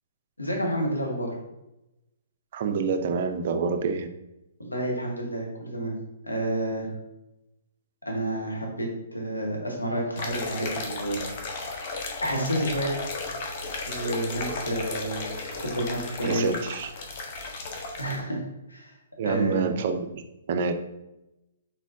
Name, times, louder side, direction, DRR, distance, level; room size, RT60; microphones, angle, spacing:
voice 1, 0.4-1.3 4.6-5.9 6.2-6.9 8.0-11.2 11.5-11.6 12.2-12.9 13.9-15.2 15.6-16.6 18.0-18.4 18.7-19.0 19.2-19.7, right 1 dB, 90° left, -1 dB, 1.1 m, -29 dB
voice 2, 2.5-4.1 16.2-16.9 19.2-20.2 20.5-20.7, right 5 dB, 50° right, 8 dB, 0.4 m, -27 dB
sound 1, 10.2-18.2, left 3 dB, 45° left, 0.7 m, -34 dB
4.1 x 3.8 x 2.6 m, 0.93 s
figure-of-eight pair, 120°, 0 cm